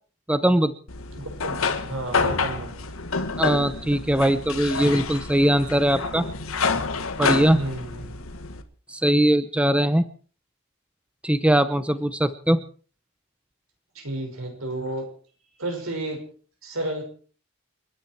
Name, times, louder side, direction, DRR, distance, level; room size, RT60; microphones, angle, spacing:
voice 1, 0.3-0.7 3.4-6.3 7.2-7.6 8.9-10.0 11.2-12.6, right 1 dB, 5° right, 12 dB, 0.7 m, -20 dB
sound 1, 0.9-8.6, left 4 dB, 85° left, 1.7 m, -28 dB
voice 2, 1.2-2.7 7.5-8.2 13.9-15.0 15.6-16.2 16.6-17.0, right 1 dB, 80° right, 4 dB, 5.8 m, -31 dB
29.5 x 10.5 x 4.6 m, 0.43 s
head